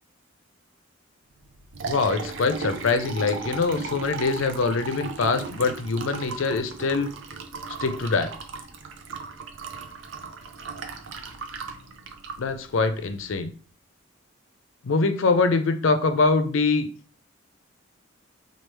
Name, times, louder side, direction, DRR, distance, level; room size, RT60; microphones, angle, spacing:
Liquid, 1.4-13.3, right 4 dB, 70° right, 0.5 m, -37 dB
voice 1, 1.8-7.1 7.8-8.3 12.4-13.5 14.8-16.9, left 4 dB, 80° left, 8 dB, 0.5 m, -23 dB
4.6 x 2.4 x 3.1 m, 0.43 s
head